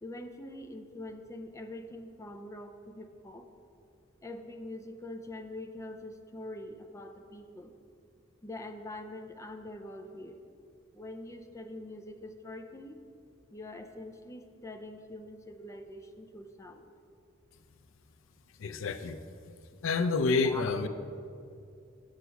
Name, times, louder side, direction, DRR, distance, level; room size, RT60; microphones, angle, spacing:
voice 1, 0.0-3.5 4.2-7.7 8.4-10.4 10.9-13.0 13.5-16.9 20.4-20.6, left 1 dB, 15° left, 6 dB, 0.5 m, -44 dB
voice 2, 18.6-19.2 19.8-20.9, left 4 dB, 90° left, 10 dB, 0.5 m, -28 dB
8.0 x 6.3 x 5.7 m, 2.5 s
head